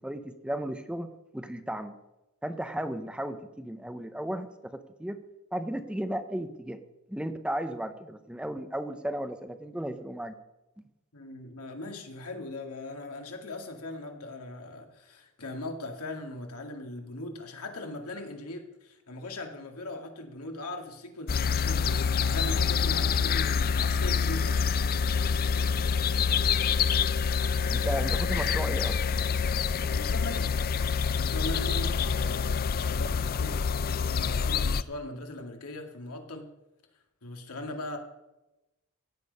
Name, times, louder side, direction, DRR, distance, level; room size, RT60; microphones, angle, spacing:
voice 1, 0.0-2.0 2.4-5.2 5.5-6.8 7.1-10.3 27.7-29.1, right 1 dB, 5° right, 9 dB, 0.7 m, -35 dB
voice 2, 11.1-24.7 25.4-25.8 29.7-30.7 31.1-36.5 37.2-38.0, left 2 dB, 80° left, 3 dB, 2.2 m, -40 dB
sound 1, 21.3-34.8, left 6 dB, 45° left, 0.4 m, -26 dB
16.0 x 8.9 x 5.4 m, 0.97 s
head